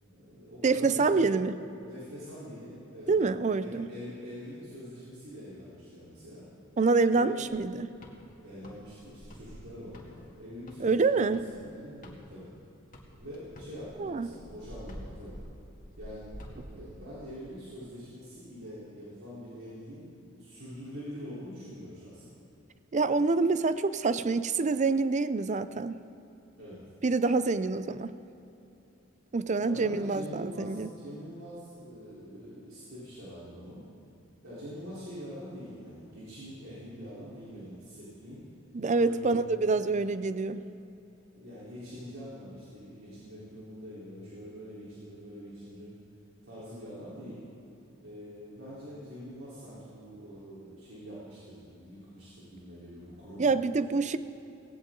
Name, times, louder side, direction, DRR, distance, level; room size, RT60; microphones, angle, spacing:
voice 1, 0.0-1.3 1.8-3.1 3.6-6.5 7.1-7.4 8.4-11.1 11.5-12.5 13.2-15.4 16.0-16.3 16.7-22.3 26.6-26.8 29.6-33.8 34.4-38.4 38.9-39.4 39.7-39.8 41.3-45.9 46.4-47.4 48.0-53.5, equal, 90° right, -10 dB, 3.9 m, -44 dB
voice 2, 0.6-1.6 3.1-3.9 6.8-7.9 10.8-11.5 14.0-14.3 22.9-26.0 27.0-28.2 29.3-30.9 38.7-40.6 53.4-54.2, right 4 dB, 35° right, 13 dB, 0.5 m, -26 dB
sound 1, 7.5-12.6 12.9-16.8, equal, 40° left, 2.0 m, -48 dB
18.0 x 17.5 x 3.9 m, 2.8 s
head